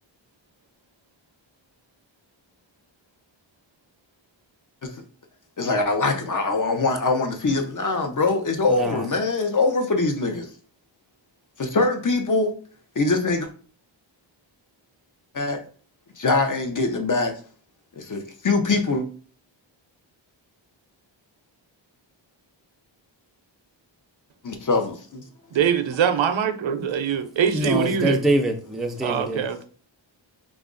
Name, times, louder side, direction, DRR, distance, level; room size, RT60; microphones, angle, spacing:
voice 1, 5.6-10.5 11.6-12.6 13.0-13.5 15.3-15.6 16.2-17.4 18.0-19.0 24.4-25.2, left 3 dB, 40° left, 0.6 m, -23 dB
voice 2, 8.7-9.1 27.5-29.5, right 1 dB, ahead, 0.4 m, -24 dB
voice 3, 25.5-28.2 29.0-29.6, right 7 dB, 75° right, 0.6 m, -23 dB
3.0 x 2.4 x 3.7 m
wide cardioid pair, 140°, 46 cm